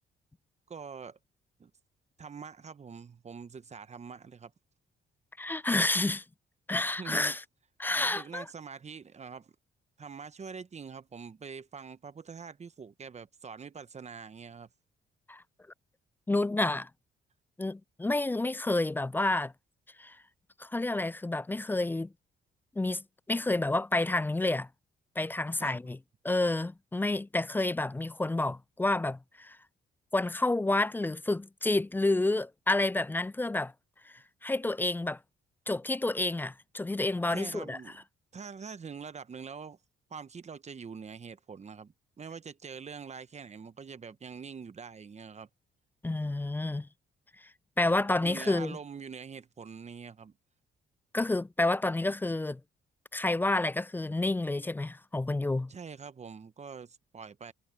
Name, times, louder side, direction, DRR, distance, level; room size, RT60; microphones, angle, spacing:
voice 1, 0.7-1.2 1.6-1.7 2.2-4.5 7.0-7.4 7.9-9.5 10.0-14.7 25.6-25.8 37.3-38.0 38.3-39.8 40.1-45.5 48.2-50.3 55.7-57.5, right 6 dB, 35° right, 1.0 m, -44 dB
voice 2, 5.4-6.2 6.7-7.4 7.8-8.5 15.3-15.4 16.3-16.9 17.6-19.5 20.0-20.2 20.6-22.1 22.8-24.7 25.2-26.0 26.2-29.6 30.1-33.7 34.4-35.2 35.7-37.8 46.0-46.9 47.8-48.8 51.1-52.6 53.1-55.7, left 2 dB, 10° left, 0.3 m, -29 dB
cardioid pair, 90°, 20 cm